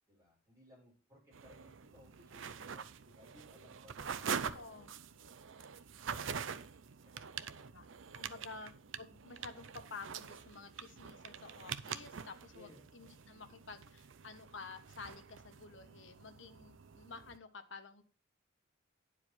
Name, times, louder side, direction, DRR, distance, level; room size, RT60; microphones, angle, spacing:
voice 1, 0.1-5.7 7.0-7.8 12.5-12.8, left 1 dB, 15° right, -6 dB, 6.1 m, -63 dB
sound 1, 1.3-17.4, right 7 dB, 85° right, 0.6 m, -45 dB
voice 2, 4.5-4.9 7.4-7.8 8.1-18.0, left 4 dB, 70° left, 8 dB, 1.1 m, -51 dB
10.0 x 4.8 x 5.9 m, 0.39 s
head